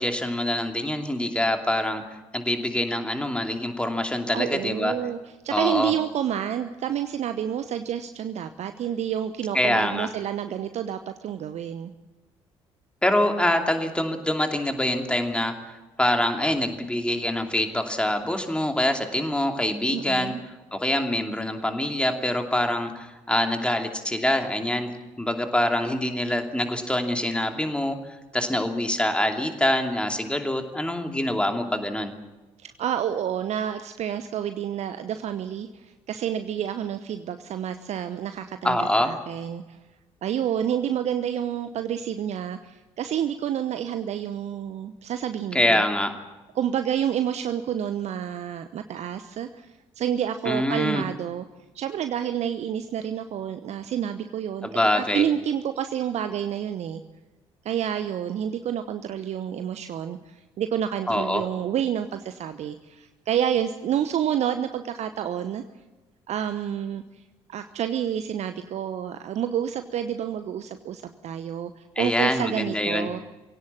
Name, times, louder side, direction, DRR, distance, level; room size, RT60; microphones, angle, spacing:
voice 1, 0.0-2.0 2.3-4.9 5.5-5.9 9.5-10.1 13.0-20.3 20.7-24.9 25.2-28.0 28.3-32.1 38.6-39.1 45.5-46.1 50.4-51.0 54.6-55.2 61.1-61.4 72.0-73.1, left 1 dB, 5° left, 4 dB, 2.8 m, -25 dB
voice 2, 4.3-5.2 5.4-11.9 19.9-20.4 32.6-39.8 40.2-45.8 46.5-51.4 51.7-54.7 54.9-57.0 57.6-65.6 66.3-67.2 67.5-73.2, right 9 dB, 50° right, 9 dB, 1.0 m, -29 dB
23.5 x 17.5 x 7.3 m, 1.2 s
figure-of-eight pair, 45°, 15 cm